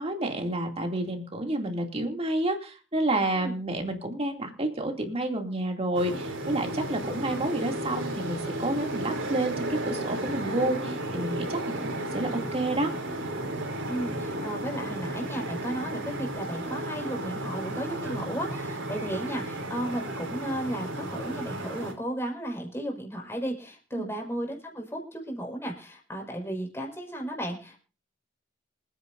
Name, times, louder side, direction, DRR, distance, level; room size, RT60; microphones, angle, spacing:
voice 1, 0.0-12.9 23.9-24.1, right 1 dB, 30° right, 3 dB, 2.5 m, -29 dB
sound 1, 5.9-21.9, right 1 dB, 85° right, 3.4 m, -33 dB
voice 2, 13.9-27.8, right 1 dB, 15° left, 1 dB, 5.1 m, -34 dB
27.0 x 9.9 x 2.6 m, 0.34 s
head